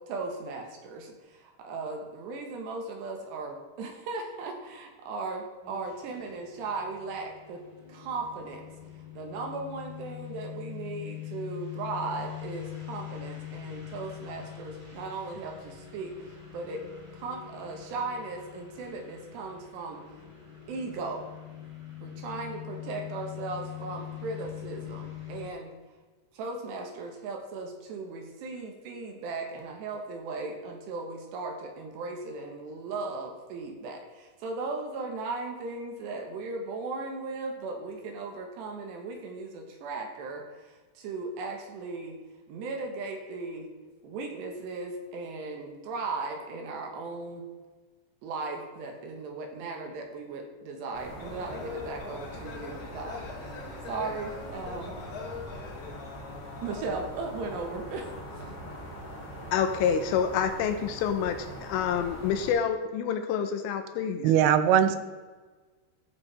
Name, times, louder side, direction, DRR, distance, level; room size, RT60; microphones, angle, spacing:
voice 1, 0.1-7.6 7.9-8.6 9.1-16.9 17.1-20.0 20.7-21.3 22.0-25.7 26.3-42.2 42.5-43.7 44.0-47.5 48.2-53.6 53.9-54.9 55.5-55.7 56.6-58.5, right 3 dB, 70° right, 3 dB, 3.1 m, -37 dB
sound 1, 5.6-25.5, left 12 dB, 30° right, 0.5 m, -43 dB
sound 2, 50.9-62.5, equal, 15° left, 1.6 m, -42 dB
sound 3, 51.2-57.0, left 5 dB, 45° left, 2.9 m, -43 dB
voice 2, 59.5-64.3, left 7 dB, 85° left, 7 dB, 3.5 m, -28 dB
voice 3, 64.2-65.0, right 9 dB, 85° right, 11 dB, 3.3 m, -20 dB
15.0 x 8.5 x 3.4 m, 1.4 s
omnidirectional pair, 5.7 m